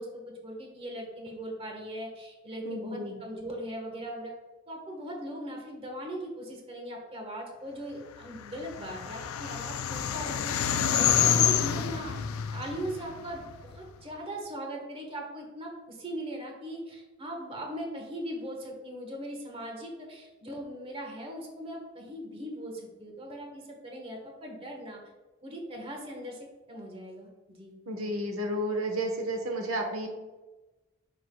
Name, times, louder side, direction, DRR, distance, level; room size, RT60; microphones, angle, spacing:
voice 1, 0.0-4.3 4.7-10.6 10.9-12.1 12.5-25.0 25.4-27.7, right 1 dB, 25° right, 0 dB, 1.3 m, -39 dB
voice 2, 2.6-3.2 27.9-30.1, right 1 dB, 85° right, 3 dB, 1.1 m, -32 dB
sound 1, 8.4-13.8, left 8 dB, 90° left, 0.5 m, -28 dB
9.0 x 6.6 x 2.3 m, 1.2 s
head